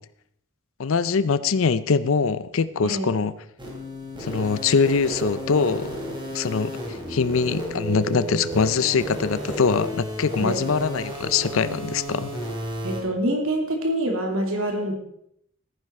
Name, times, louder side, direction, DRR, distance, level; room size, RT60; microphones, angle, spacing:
voice 1, 0.8-3.3 4.2-6.0 6.3-6.7 7.1-12.3, left 5 dB, 70° left, 15 dB, 0.5 m, -23 dB
voice 2, 2.8-3.1 10.4-10.7 12.8-14.9, right 1 dB, 70° right, 2 dB, 2.7 m, -26 dB
sound 1, 3.6-13.0, equal, 20° right, 3.1 m, -32 dB
14.0 x 10.0 x 4.3 m, 0.74 s
head